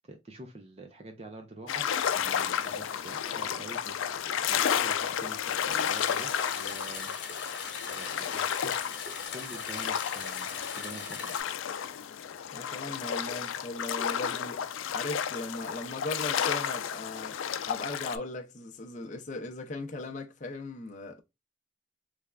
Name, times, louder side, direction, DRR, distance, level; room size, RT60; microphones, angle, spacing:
voice 1, 0.1-1.9 2.1-7.5 7.9-11.4, right 2 dB, 30° right, 0.5 m, -47 dB
sound 1, 1.7-18.2, left 8 dB, 90° left, 0.4 m, -32 dB
sound 2, 5.7-11.4, left 6 dB, 60° left, 1.1 m, -40 dB
voice 2, 12.5-14.6 14.9-17.4 17.6-21.2, left 2 dB, 40° left, 0.5 m, -38 dB
3.4 x 3.2 x 2.3 m
head